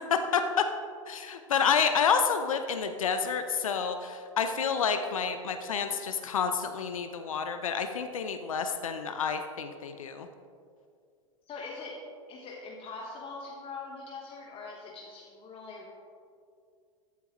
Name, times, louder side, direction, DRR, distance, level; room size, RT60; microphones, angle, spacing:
voice 1, 0.1-0.6 1.1-10.3, left 6 dB, 80° left, 7 dB, 0.7 m, -29 dB
voice 2, 11.4-15.9, left 3 dB, 35° left, -1 dB, 1.3 m, -42 dB
14.5 x 8.3 x 3.1 m, 2.3 s
hypercardioid pair, 90°, 17 cm